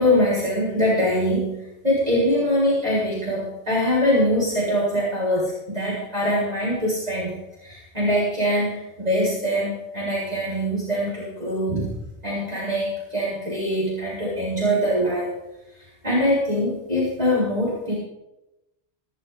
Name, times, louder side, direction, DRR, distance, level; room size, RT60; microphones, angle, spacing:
voice 1, 0.0-7.3 7.6-12.0 12.2-15.3 16.0-17.9, equal, 35° right, -7 dB, 6.5 m, -23 dB
19.5 x 13.0 x 4.1 m, 0.94 s
omnidirectional pair, 1.2 m